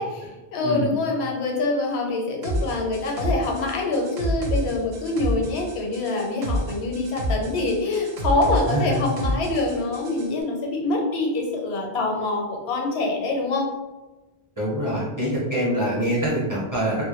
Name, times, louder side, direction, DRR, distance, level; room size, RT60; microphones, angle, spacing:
voice 1, 0.0-13.7, left 2 dB, 85° left, 0 dB, 0.9 m, -25 dB
sound 1, 2.4-10.3, equal, 60° right, 0.6 m, -29 dB
voice 2, 8.7-9.0 14.6-17.1, right 1 dB, 20° right, -7 dB, 0.7 m, -25 dB
2.1 x 2.0 x 2.9 m, 1.1 s
omnidirectional pair, 1.1 m